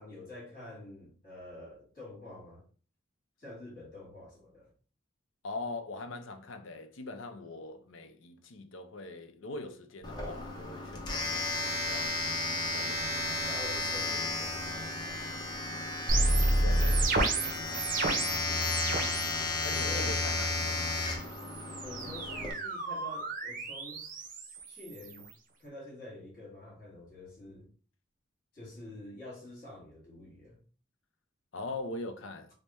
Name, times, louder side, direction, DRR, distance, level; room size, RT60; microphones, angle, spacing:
voice 1, 0.0-2.6 3.4-4.7 12.1-12.3 13.4-16.4 18.3-18.7 19.7-20.1 21.8-25.3 25.6-27.7 28.5-30.6, left 2 dB, 45° left, 1.8 m, -48 dB
voice 2, 5.4-12.2 12.6-13.5 16.6-17.5 19.6-21.0 31.5-32.5, left 2 dB, 75° left, 0.5 m, -42 dB
Domestic sounds home sounds, 10.0-22.5, left 2 dB, 20° left, 0.7 m, -33 dB
sound 1, 16.1-19.3 19.6-20.2 21.2-25.3, right 2 dB, 40° right, 0.5 m, -31 dB
3.4 x 2.1 x 4.1 m
head